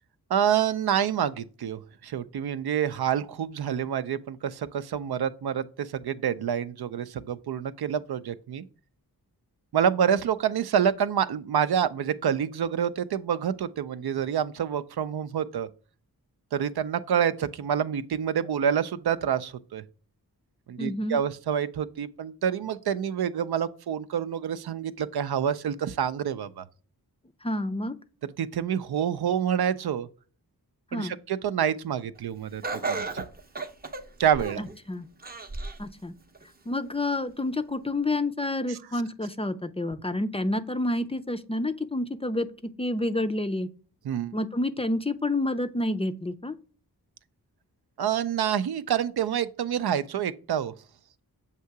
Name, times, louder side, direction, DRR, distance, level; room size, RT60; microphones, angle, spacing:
voice 1, 0.3-8.6 9.7-15.7 16.5-19.8 20.7-26.6 28.2-30.1 30.9-32.6 32.9-33.2 34.2-34.6 38.7-38.8 44.0-44.4 48.0-50.7, right 8 dB, 80° right, 0.5 m, -27 dB
voice 2, 20.8-21.2 27.4-28.0 30.9-31.2 34.6-35.1 35.8-36.1 36.7-42.5 42.8-43.7 44.3-46.6, left 1 dB, 15° left, 0.4 m, -29 dB
Laughter, 32.6-34.7 35.2-35.9 36.3-36.4 37.4-37.5, right 3 dB, 25° right, 0.6 m, -33 dB
7.3 x 2.8 x 4.6 m
wide cardioid pair, 60°, 37 cm